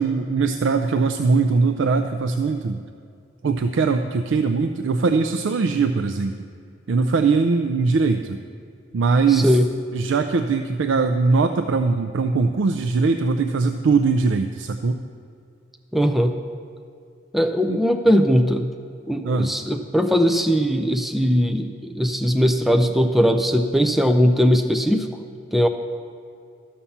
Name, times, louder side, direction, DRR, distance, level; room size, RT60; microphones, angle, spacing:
voice 1, 0.0-2.8 3.4-6.3 6.9-8.4 8.9-9.6 9.9-15.0 17.7-17.8 19.2-19.5, right 4 dB, 70° right, 7 dB, 0.4 m, -21 dB
voice 2, 9.3-9.7 15.9-16.4 17.3-18.7 19.1-25.1 25.5-25.7, equal, ahead, 6 dB, 0.4 m, -19 dB
13.0 x 5.6 x 7.1 m, 2.4 s
head